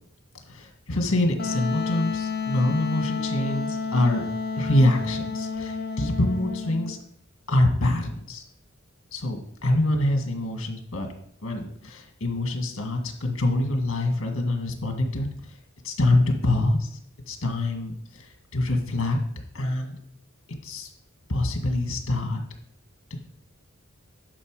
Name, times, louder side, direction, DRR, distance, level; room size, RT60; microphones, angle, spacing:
voice 1, 0.5-4.2 4.6-7.0 7.5-8.4 9.1-11.1 11.4-15.6 15.8-17.0 17.3-19.2 19.5-20.0 20.6-20.9 21.3-22.4 23.1-23.2, left 1 dB, 75° left, 3 dB, 1.9 m, -25 dB
Wind instrument woodwind instrument, 1.4-6.9, left 5 dB, 50° left, 1.0 m, -30 dB
11.5 x 5.5 x 4.8 m, 0.67 s
head